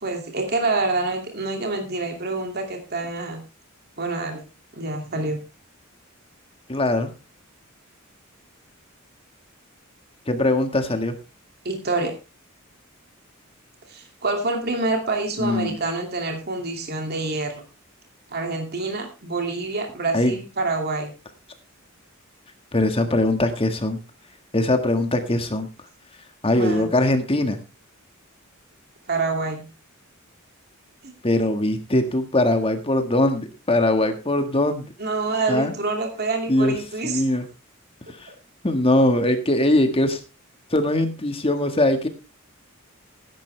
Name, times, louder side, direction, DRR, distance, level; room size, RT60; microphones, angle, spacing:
voice 1, 0.0-3.4 4.0-4.4 4.7-5.4 11.6-12.1 13.9-17.6 18.3-21.1 26.5-26.9 29.1-29.6 31.0-31.1 35.0-37.2, right 3 dB, 50° right, 3 dB, 2.5 m, -27 dB
voice 2, 6.7-7.1 10.3-11.1 15.4-15.8 20.1-20.3 22.7-24.0 24.5-25.7 26.4-27.6 31.2-34.9 35.5-35.7 36.5-36.7 37.0-37.5 38.2-38.3 38.6-40.2 40.7-42.1, left 1 dB, 25° left, 7 dB, 1.7 m, -21 dB
15.0 x 10.5 x 3.3 m, 0.28 s
head